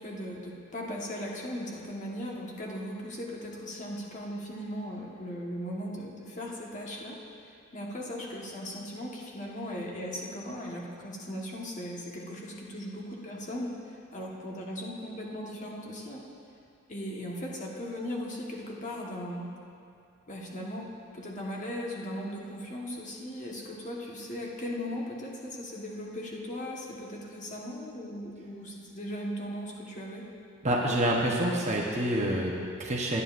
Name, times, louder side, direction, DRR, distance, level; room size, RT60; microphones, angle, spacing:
voice 1, 0.0-7.2 7.7-13.7 14.1-16.2 16.9-19.5 20.3-20.9 21.1-30.2, equal, 35° left, -2 dB, 1.3 m, -38 dB
voice 2, 30.6-33.2, right 1 dB, 30° right, -2 dB, 0.9 m, -27 dB
18.5 x 9.4 x 2.5 m, 2.5 s
head